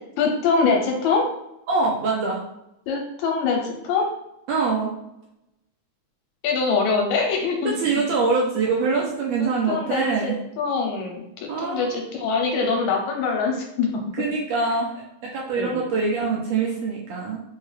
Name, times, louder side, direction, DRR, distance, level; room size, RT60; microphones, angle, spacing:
voice 1, 0.2-1.3 2.9-4.1 6.4-7.8 9.4-13.9 14.6-14.7 15.6-15.8, left 4 dB, 80° left, 1 dB, 1.9 m, -24 dB
voice 2, 1.7-2.4 4.5-4.9 7.7-10.4 11.5-12.0 14.2-17.4, right 4 dB, 75° right, -2 dB, 1.6 m, -24 dB
4.7 x 2.3 x 3.1 m, 0.84 s
omnidirectional pair, 3.4 m